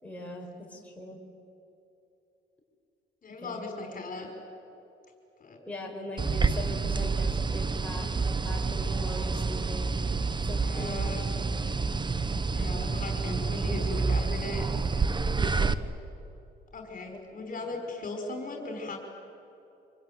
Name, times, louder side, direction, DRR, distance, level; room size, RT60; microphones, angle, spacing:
voice 1, 0.0-1.2 3.4-3.6 5.6-10.0 10.4-11.6 15.4-15.8 17.6-17.8, left 1 dB, 5° left, -1 dB, 5.1 m, -41 dB
voice 2, 3.2-4.3 5.4-5.6 10.6-11.2 12.4-14.7 16.7-19.0, left 2 dB, 45° left, 3 dB, 5.0 m, -38 dB
sound 1, 6.2-15.7, right 4 dB, 25° right, 1.0 m, -28 dB
26.5 x 21.0 x 9.4 m, 2.8 s
cardioid pair, 90°, 20 cm